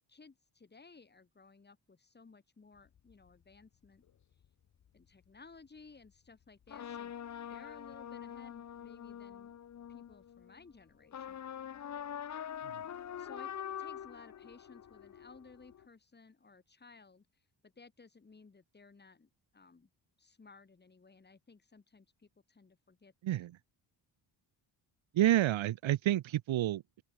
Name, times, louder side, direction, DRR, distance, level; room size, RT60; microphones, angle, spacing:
voice 1, 0.0-4.0 4.9-7.2 7.5-9.6 9.9-11.8 13.2-17.3 17.6-19.9 20.2-23.5, left 4 dB, 20° left, 6.1 m, -58 dB
sound 1, 2.9-3.3 4.4-4.5 6.7-10.6 11.1-15.9, left 9 dB, 40° left, 0.9 m, -44 dB
voice 2, 25.1-27.0, right 13 dB, 90° right, 1.6 m, -29 dB
open air
wide cardioid pair, 180°, 45 cm